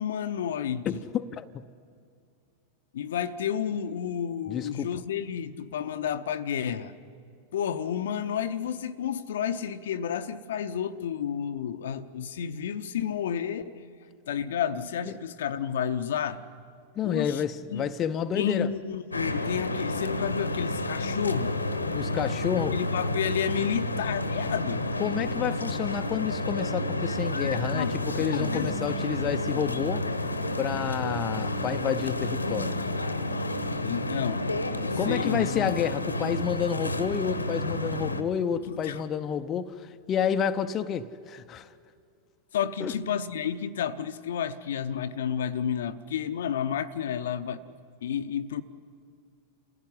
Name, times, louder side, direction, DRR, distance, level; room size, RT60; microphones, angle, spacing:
voice 1, 0.0-1.0 2.9-6.9 7.5-13.8 14.3-16.4 17.0-17.4 17.7-17.9 18.3-21.5 22.7-24.8 27.7-28.7 33.8-35.8 38.7-39.0 42.5-47.7 48.0-48.6, left 8 dB, 60° left, 0.8 m, -31 dB
voice 2, 0.9-1.6 4.5-4.9 16.9-18.7 21.9-22.8 25.0-30.1 30.6-32.8 35.0-41.7 42.8-42.9, left 8 dB, 30° left, 0.7 m, -30 dB
sound 1, 19.1-38.2, left 1 dB, 80° left, 1.2 m, -30 dB
28.0 x 16.0 x 9.8 m
figure-of-eight pair, 90°, 0 cm